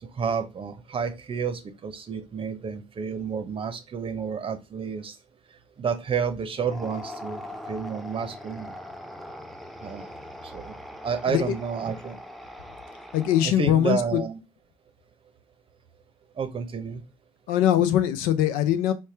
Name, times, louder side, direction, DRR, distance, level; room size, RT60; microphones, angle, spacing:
voice 1, 0.0-5.1 5.8-7.4 7.7-8.7 9.8-10.1 10.4-10.8 11.0-12.2 13.4-14.4 16.4-17.0, right 6 dB, 35° right, 0.8 m, -30 dB
sound 1, 6.6-13.7, left 1 dB, ahead, 0.5 m, -41 dB
voice 2, 13.1-14.2 17.5-18.9, left 11 dB, 65° left, 0.5 m, -22 dB
4.2 x 2.1 x 3.3 m
hypercardioid pair, 60°, 16 cm